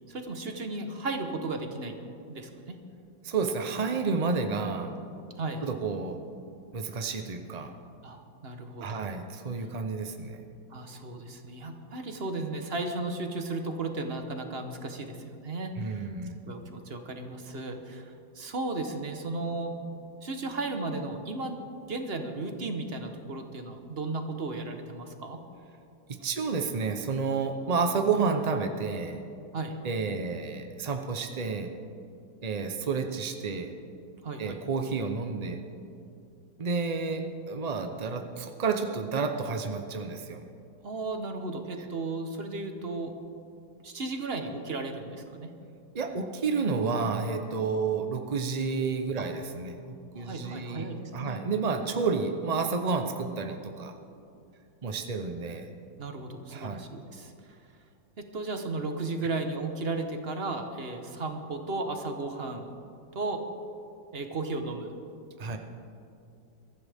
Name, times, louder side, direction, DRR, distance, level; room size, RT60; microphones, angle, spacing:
voice 1, 0.1-2.0 2.3-2.8 5.4-5.6 8.0-9.0 10.7-16.0 16.5-19.8 20.2-21.6 21.9-25.4 29.5-29.8 34.2-34.6 40.8-43.1 43.8-45.5 49.2-49.3 50.2-51.4 56.0-57.6 58.2-62.7 63.1-63.4 64.1-64.9, right 3 dB, 40° right, 5 dB, 1.1 m, -35 dB
voice 2, 3.2-4.9 5.6-6.2 6.7-7.7 8.8-10.4 15.8-16.4 26.1-29.2 29.8-31.7 32.4-33.7 34.4-35.6 36.6-40.4 45.9-50.9 51.1-53.9 54.8-55.7 56.5-56.9 59.2-59.3 65.4-65.6, right 4 dB, 70° right, 5 dB, 0.3 m, -30 dB
22.5 x 14.0 x 3.6 m, 2.5 s
omnidirectional pair, 2.0 m